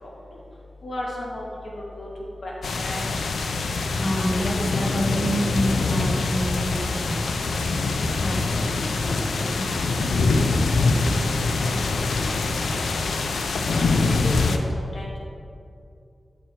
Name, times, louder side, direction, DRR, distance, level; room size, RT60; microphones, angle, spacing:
voice 1, 0.8-2.1 2.4-2.5 2.8-3.1 13.7-14.4 14.7-15.2, left 1 dB, 65° left, -3 dB, 1.0 m, -34 dB
sound 1, 2.6-14.6, left 3 dB, 90° left, 0.4 m, -24 dB
voice 2, 3.7-7.5 8.2-11.8 12.3-12.7, equal, 30° left, -2 dB, 1.2 m, -30 dB
6.7 x 4.5 x 4.3 m, 2.5 s
wide cardioid pair, 85°, 0 cm